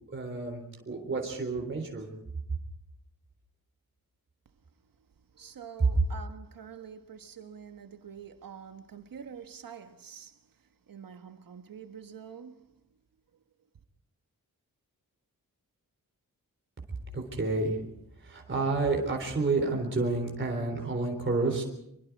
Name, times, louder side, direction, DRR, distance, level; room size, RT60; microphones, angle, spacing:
voice 1, 0.1-2.1 17.1-17.8 18.2-21.6, right 3 dB, 35° right, 3.8 m, -30 dB
voice 2, 5.3-10.5 10.9-12.7, right 7 dB, 80° right, 1.6 m, -46 dB
26.0 x 23.5 x 4.8 m
wide cardioid pair, 175°, 34 cm